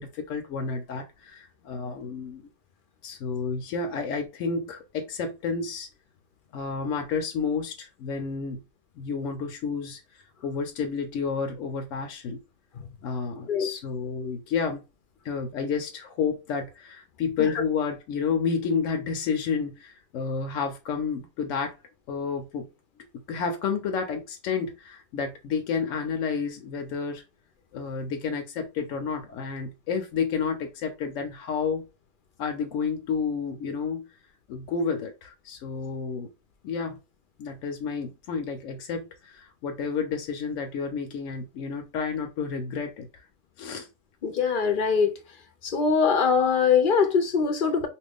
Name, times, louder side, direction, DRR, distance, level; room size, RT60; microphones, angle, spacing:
voice 1, 0.0-2.4 3.0-5.9 6.5-8.6 9.0-12.4 13.0-14.8 15.2-21.7 22.1-22.7 23.1-27.2 27.7-31.8 32.4-34.1 34.5-36.3 36.6-37.0 37.4-43.1 43.6-43.9, left 5 dB, 90° left, 1.0 m, -30 dB
voice 2, 44.2-45.1 45.6-47.9, left 6 dB, 60° left, 0.6 m, -22 dB
2.9 x 2.5 x 3.4 m
omnidirectional pair, 1.3 m